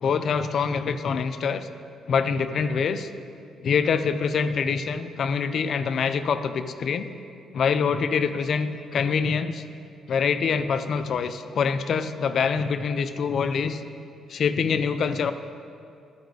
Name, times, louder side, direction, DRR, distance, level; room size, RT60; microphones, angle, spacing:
voice 1, 0.0-1.7 2.1-3.1 3.6-7.1 7.5-9.6 10.1-13.8 14.3-15.3, left 6 dB, 60° left, 11 dB, 0.4 m, -25 dB
12.0 x 5.0 x 4.7 m, 2.4 s
cardioid pair, 90°, 0 cm